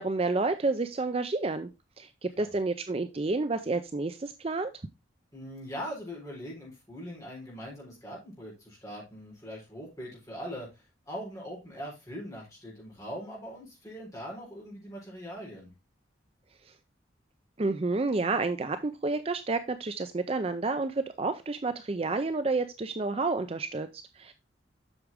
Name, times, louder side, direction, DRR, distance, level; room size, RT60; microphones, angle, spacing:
voice 1, 0.0-1.7 2.0-4.7 17.6-24.3, right 3 dB, 30° right, 10 dB, 0.4 m, -30 dB
voice 2, 5.3-15.7, equal, 15° left, -3 dB, 4.3 m, -41 dB
8.0 x 6.1 x 3.5 m, 0.25 s
head